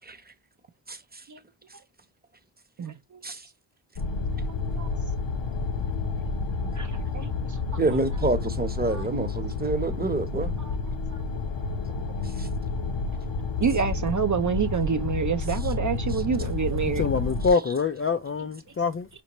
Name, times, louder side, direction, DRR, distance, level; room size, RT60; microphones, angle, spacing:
voice 1, 2.8-3.2 4.7-4.9 6.6-7.6 8.9-9.1 10.6-10.8 11.1-11.2 13.6-17.0, right 6 dB, 40° right, 0.5 m, -28 dB
sound 1, 4.0-17.5, left 4 dB, 65° left, 0.8 m, -30 dB
voice 2, 7.8-10.5 12.4-12.5, right 2 dB, 20° right, 0.9 m, -27 dB
voice 3, 16.9-19.1, left 5 dB, 30° left, 0.4 m, -25 dB
5.2 x 2.1 x 2.9 m
cardioid pair, 45°, 48 cm